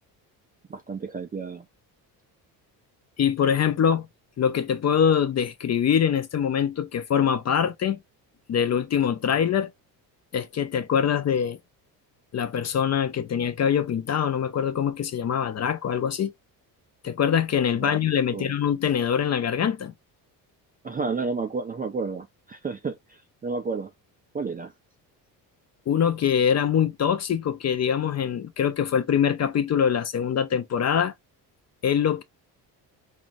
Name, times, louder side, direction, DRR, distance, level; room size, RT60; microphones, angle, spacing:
voice 1, 0.7-1.7 17.8-18.0 18.3-18.5 20.8-23.9 24.3-24.7, right 4 dB, 20° right, 0.4 m, -31 dB
voice 2, 3.2-4.1 4.4-8.0 8.5-9.7 10.3-11.6 12.3-16.3 17.0-19.9 25.9-31.1 31.8-32.2, left 8 dB, 35° left, 0.5 m, -24 dB
3.7 x 2.1 x 2.5 m
supercardioid pair, 70°, 46 cm